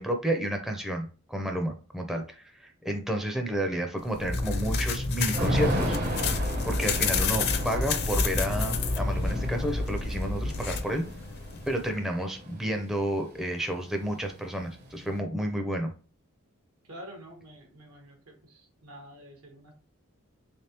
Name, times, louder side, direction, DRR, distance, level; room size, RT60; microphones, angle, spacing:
voice 1, 0.0-5.9 6.6-11.0 11.7-15.9, right 1 dB, ahead, 3 dB, 0.5 m, -31 dB
sound 1, 4.0-11.9, left 8 dB, 50° left, 0.5 m, -33 dB
Motor vehicle (road), 4.2-10.8, left 1 dB, 80° left, 0.8 m, -31 dB
Thunder / Rain, 5.3-13.2 13.5-13.6 13.8-15.2, equal, 50° right, 0.8 m, -34 dB
voice 2, 16.9-19.7, equal, 80° right, 2 dB, 1.3 m, -48 dB
3.5 x 3.4 x 2.8 m, 0.35 s
head